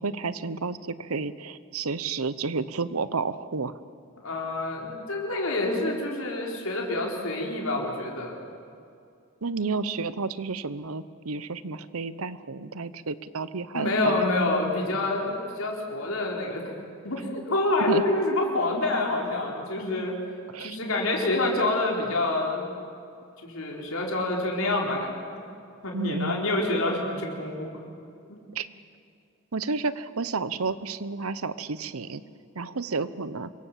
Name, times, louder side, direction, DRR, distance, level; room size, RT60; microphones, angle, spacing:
voice 1, 0.0-3.7 9.4-14.3 17.9-18.0 20.5-20.8 25.9-26.4 28.5-28.7 29.5-32.2 32.5-33.5, right 4 dB, 90° right, 15 dB, 1.0 m, -31 dB
voice 2, 4.2-8.4 13.7-16.7 17.0-20.1 20.6-22.7 23.4-25.4 25.8-27.8 28.3-28.4, left 2 dB, 80° left, -1 dB, 4.3 m, -27 dB
26.5 x 23.5 x 7.5 m, 2.5 s
head